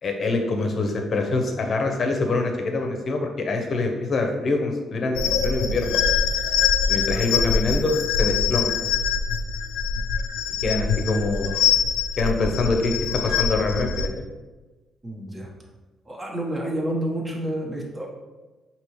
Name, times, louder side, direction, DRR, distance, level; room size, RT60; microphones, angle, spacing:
voice 1, 0.0-6.0 6.9-8.7 10.6-11.6 12.2-12.9 13.2-14.1, left 3 dB, 50° left, 3 dB, 0.7 m, -25 dB
sound 1, 5.1-14.1, left 6 dB, 90° left, 0.3 m, -24 dB
voice 2, 15.0-15.5 16.1-18.1, right 1 dB, 20° right, -2 dB, 1.1 m, -29 dB
5.2 x 2.9 x 3.1 m, 1.2 s
cardioid pair, 90°, 0 cm